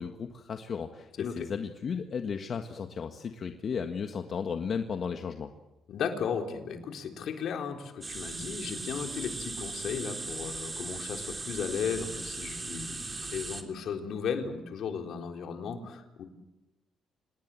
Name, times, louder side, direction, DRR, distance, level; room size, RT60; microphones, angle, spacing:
voice 1, 0.0-5.5, left 6 dB, 50° left, 6 dB, 1.6 m, -35 dB
voice 2, 1.2-1.5 5.9-16.2, left 6 dB, 70° left, 4 dB, 3.7 m, -35 dB
sound 1, 8.0-13.6, right 3 dB, 25° right, 3.5 m, -38 dB
27.0 x 19.5 x 7.6 m, 1.0 s
cardioid pair, 90°, 0 cm